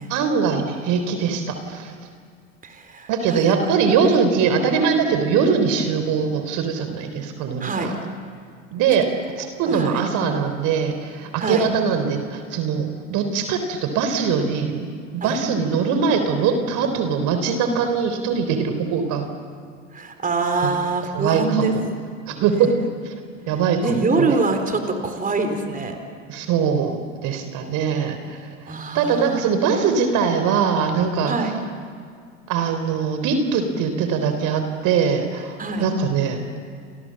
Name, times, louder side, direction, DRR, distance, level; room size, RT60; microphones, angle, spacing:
voice 1, 0.1-1.9 3.1-7.9 8.7-9.1 9.4-19.3 20.6-20.7 21.1-21.7 22.3-22.7 23.0-23.1 23.5-24.4 26.3-31.5 32.5-36.4, right 6 dB, 50° right, 7 dB, 3.7 m, -22 dB
voice 2, 2.6-3.5 7.6-7.9 9.6-10.0 11.4-11.7 15.2-15.4 19.9-21.7 22.3-22.4 23.8-26.0 28.7-29.6 31.3-31.5 35.6-35.9, right 3 dB, 20° right, 6 dB, 4.2 m, -24 dB
29.5 x 26.0 x 7.6 m, 2.2 s
hypercardioid pair, 90°, 38 cm